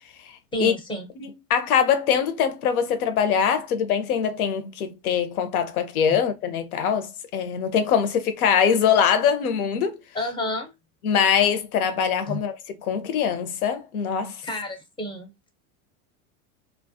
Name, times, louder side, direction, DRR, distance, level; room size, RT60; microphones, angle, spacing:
voice 1, 0.5-1.1 6.1-6.2 10.1-10.7 12.3-12.4 14.4-15.5, left 1 dB, 10° left, 0.5 m, -30 dB
voice 2, 1.2-10.0 11.0-12.6 12.8-14.4, left 7 dB, 80° left, 0.7 m, -23 dB
2.3 x 2.0 x 2.6 m
hypercardioid pair, 105°, 43 cm